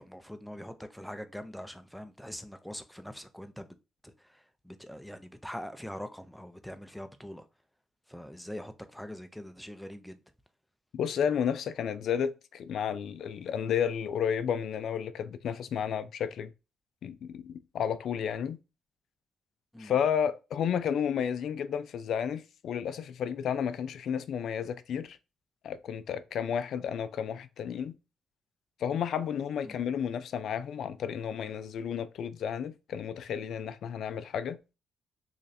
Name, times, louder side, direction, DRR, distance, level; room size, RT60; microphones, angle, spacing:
voice 1, 0.0-3.8 4.0-7.5 8.1-10.2 19.7-20.0 29.6-29.7, equal, ahead, 0.5 m, -43 dB
voice 2, 10.9-16.5 17.0-18.6 19.8-25.2 25.6-27.9 28.8-34.6, left 8 dB, 70° left, 0.3 m, -32 dB
3.2 x 2.5 x 4.0 m
cardioid pair, 90°, 0 cm